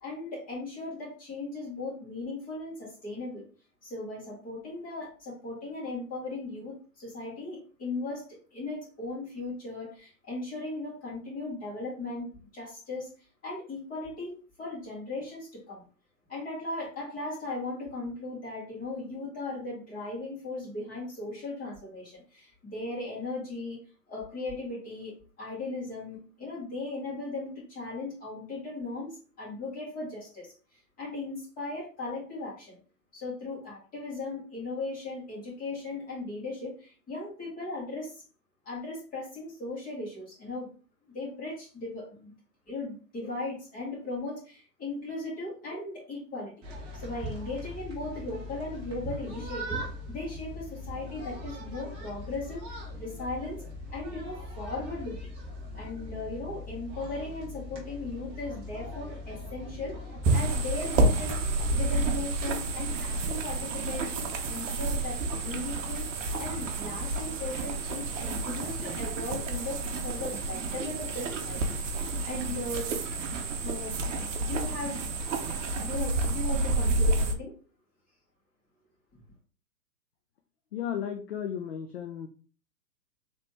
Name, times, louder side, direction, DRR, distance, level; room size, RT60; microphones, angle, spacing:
voice 1, 0.0-3.4 3.8-13.1 13.4-14.3 14.6-15.8 16.3-23.8 24.1-30.5 31.0-32.8 33.1-38.2 38.7-40.7 41.1-42.3 42.7-46.5 46.9-49.8 50.1-53.6 53.9-55.3 55.7-61.4 61.7-66.0 66.4-72.9 73.6-74.0 74.4-75.0 75.8-77.5, left 2 dB, 15° left, -5 dB, 2.2 m, -37 dB
sound 1, 46.6-62.1, right 1 dB, 10° right, 0.6 m, -37 dB
sound 2, 60.2-77.3, right 2 dB, 50° right, 0.8 m, -30 dB
voice 2, 80.7-82.3, left 9 dB, 40° left, 5 dB, 0.4 m, -34 dB
4.1 x 3.4 x 3.1 m, 0.39 s
figure-of-eight pair, 125°, 50 cm